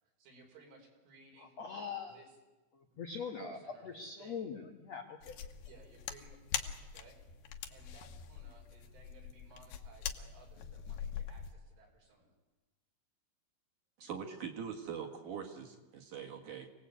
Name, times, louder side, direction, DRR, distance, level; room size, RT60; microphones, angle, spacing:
voice 1, 0.0-1.6 2.0-2.3 2.9-3.0 3.4-4.5 5.7-7.2 7.7-12.4, right 3 dB, 80° right, 0 dB, 7.7 m, -60 dB
voice 2, 1.4-2.2 2.7-5.4, left 5 dB, 85° left, 3 dB, 1.4 m, -43 dB
sound 1, 5.2-11.5, left 9 dB, 70° left, 2.8 m, -43 dB
voice 3, 14.0-16.7, right 7 dB, 55° right, 3 dB, 2.7 m, -43 dB
27.0 x 19.0 x 8.4 m, 1.1 s
omnidirectional pair, 5.5 m